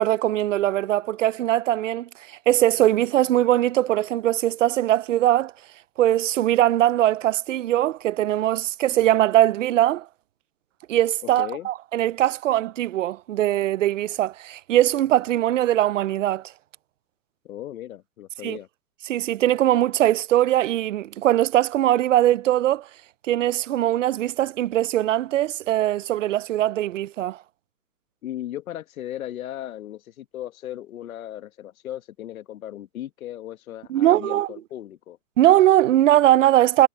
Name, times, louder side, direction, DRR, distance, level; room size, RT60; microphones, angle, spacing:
voice 1, 0.0-5.5 6.0-10.1 10.9-16.4 18.4-18.6 19.1-22.9 23.3-27.4 33.9-34.5 35.4-36.9, right 13 dB, 55° right, 0.6 m, -21 dB
voice 2, 11.2-11.7 17.4-18.7 28.2-35.2, left 12 dB, 60° left, 1.5 m, -36 dB
hypercardioid pair, 160°, 47 cm